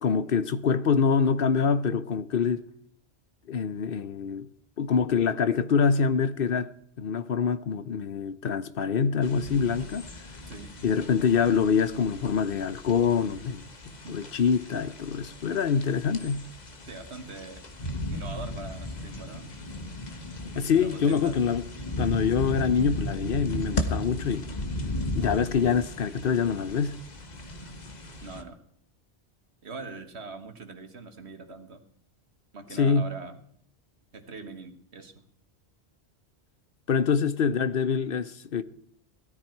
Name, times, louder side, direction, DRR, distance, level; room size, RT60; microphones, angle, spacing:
voice 1, 0.0-2.7 3.5-4.5 4.8-6.7 7.0-10.1 10.8-13.6 14.1-16.5 20.6-21.6 22.0-24.5 25.1-27.0 32.8-33.1 36.9-38.6, left 6 dB, 60° left, 0.9 m, -25 dB
sound 1, 9.2-28.4, left 1 dB, 40° left, 1.3 m, -36 dB
voice 2, 10.5-10.8 14.0-14.2 16.8-17.6 18.1-19.5 20.8-21.4 28.2-28.6 29.6-31.8 32.5-33.4 34.1-35.2, right 3 dB, 80° right, 1.9 m, -42 dB
17.0 x 13.0 x 4.6 m
omnidirectional pair, 1.1 m